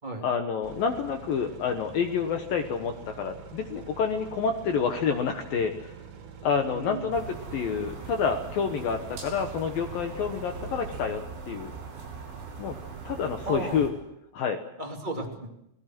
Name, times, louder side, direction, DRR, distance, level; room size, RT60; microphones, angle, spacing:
voice 1, 0.2-5.9 6.4-11.7 12.6-12.8 13.1-13.9 14.3-14.6, left 6 dB, 75° left, 5 dB, 2.2 m, -28 dB
sound 1, 0.6-11.0, right 7 dB, 85° right, 5.2 m, -46 dB
voice 2, 6.6-7.1 13.4-13.9 14.8-15.5, right 2 dB, 15° right, 0 dB, 1.9 m, -35 dB
sound 2, 7.1-13.9, right 5 dB, 65° right, 8.3 m, -41 dB
29.0 x 18.5 x 6.1 m, 0.83 s
omnidirectional pair, 5.9 m